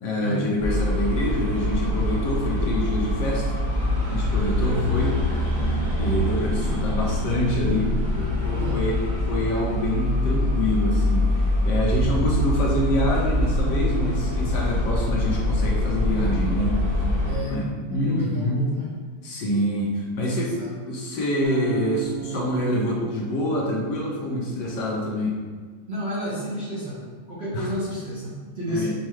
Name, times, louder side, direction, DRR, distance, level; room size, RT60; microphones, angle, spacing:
voice 1, 0.0-3.5 4.1-5.2 6.0-7.9 8.4-11.3 11.6-16.8 17.5-18.7 19.2-20.6 20.8-25.4 27.5-27.7 28.7-28.9, left 1 dB, 70° left, -3 dB, 1.2 m, -26 dB
sound 1, 0.6-17.4, left 1 dB, 20° left, 0.7 m, -24 dB
voice 2, 8.1-8.8 17.2-17.7 17.9-18.9 20.6-20.7 25.9-28.9, equal, 45° right, -10 dB, 0.9 m, -31 dB
sound 2, 21.4-24.6, right 10 dB, 70° right, 1.2 m, -35 dB
5.5 x 2.4 x 3.0 m, 1.5 s
omnidirectional pair, 2.2 m